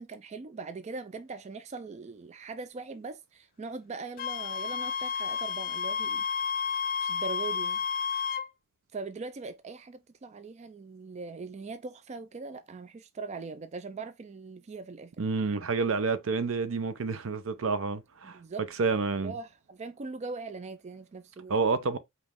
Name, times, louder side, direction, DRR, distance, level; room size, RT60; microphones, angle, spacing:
voice 1, 0.0-6.2 7.0-7.8 8.9-15.1 18.2-18.7 19.1-21.6, right 4 dB, 35° right, 0.4 m, -41 dB
Wind instrument woodwind instrument, 4.2-8.5, left 6 dB, 40° left, 0.4 m, -31 dB
voice 2, 15.2-18.4 18.8-19.3 21.5-22.0, right 4 dB, 75° right, 0.6 m, -29 dB
5.1 x 2.4 x 3.5 m
head